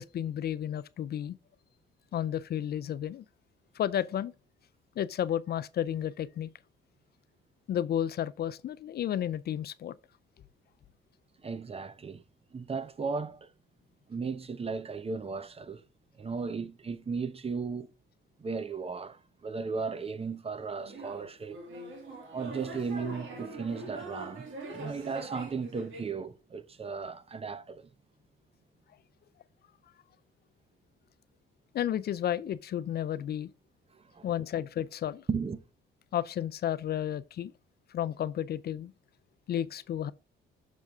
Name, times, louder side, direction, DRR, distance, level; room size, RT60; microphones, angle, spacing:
voice 1, 0.0-1.3 2.1-3.2 3.8-4.3 5.0-6.5 7.7-9.9 31.7-33.5 34.2-35.2 36.1-37.5 37.9-38.9 39.5-40.1, left 10 dB, 55° left, 0.4 m, -32 dB
voice 2, 11.4-12.2 12.5-13.5 14.1-15.8 16.2-17.9 18.4-21.6 22.3-27.9 33.9-34.3 35.3-35.6, right 5 dB, 30° right, 0.7 m, -36 dB
sound 1, 20.8-26.1, right 2 dB, 75° right, 2.6 m, -43 dB
6.4 x 6.2 x 3.5 m
cardioid pair, 90°, 20 cm